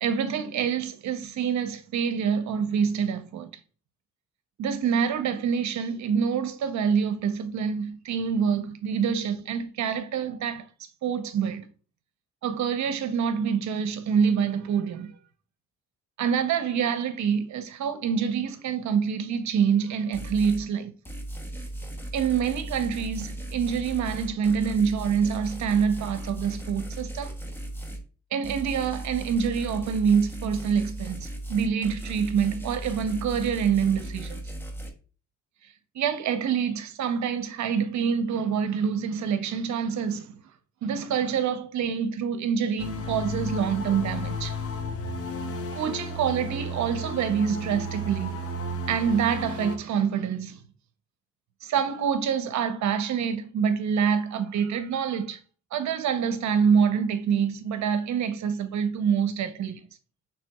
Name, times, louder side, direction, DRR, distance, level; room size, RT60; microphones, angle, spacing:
voice 1, 0.0-3.5 4.6-10.7 11.0-11.7 12.4-15.1 16.2-20.9 22.1-27.4 28.3-34.4 35.9-40.4 40.8-44.6 45.7-48.4 48.9-50.6 51.6-55.4 55.7-59.8, right 7 dB, 65° right, 0.8 m, -26 dB
sound 1, 20.1-20.7 21.0-28.0 28.4-34.9, right 1 dB, 5° left, 0.8 m, -37 dB
sound 2, 42.8-49.8, left 1 dB, 50° left, 0.8 m, -33 dB
6.2 x 3.3 x 2.3 m
cardioid pair, 90°, 30 cm